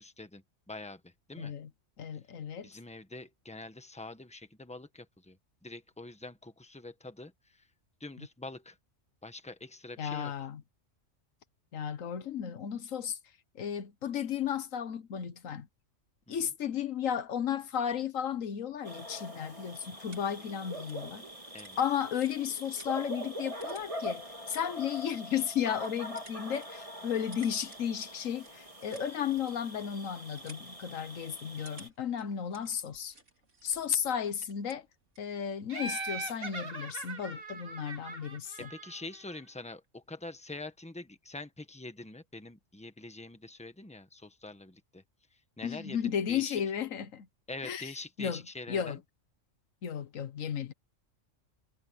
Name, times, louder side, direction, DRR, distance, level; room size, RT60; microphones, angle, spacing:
voice 1, 0.0-1.5 2.6-7.7 8.0-8.8 9.2-10.5 16.3-16.4 21.5-21.8 38.6-45.0 45.3-46.6 47.5-49.0, left 2 dB, 5° left, 1.3 m, -45 dB
voice 2, 1.4-1.7 2.0-2.7 8.2-8.3 10.0-10.6 11.7-13.2 13.5-15.7 16.3-21.2 21.8-33.1 33.6-34.9 35.2-38.7 45.6-47.3 47.6-47.9 48.2-48.4 48.7-49.0 49.8-50.7, left 8 dB, 85° left, 1.4 m, -34 dB
sound 1, 18.8-31.9, equal, 25° right, 3.0 m, -43 dB
sound 2, 19.8-35.4, right 2 dB, 65° right, 4.1 m, -59 dB
Laughter, 35.7-39.3, right 3 dB, 45° right, 2.6 m, -40 dB
omnidirectional pair, 1.3 m